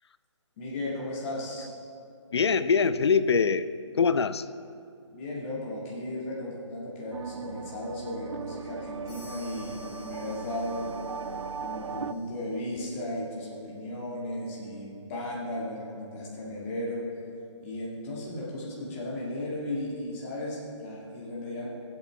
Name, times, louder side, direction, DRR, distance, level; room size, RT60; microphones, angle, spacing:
voice 1, 0.6-1.7 5.1-10.9 11.6-17.1 17.6-21.7, left 1 dB, 25° left, -5 dB, 2.0 m, -35 dB
voice 2, 2.3-4.5, left 5 dB, 60° left, 14 dB, 0.5 m, -24 dB
sound 1, 7.1-12.1, right 6 dB, 75° right, 0.4 m, -38 dB
sound 2, 9.1-12.8, left 1 dB, 5° left, 3.1 m, -54 dB
17.0 x 8.0 x 3.4 m, 2.4 s
figure-of-eight pair, 140°, 16 cm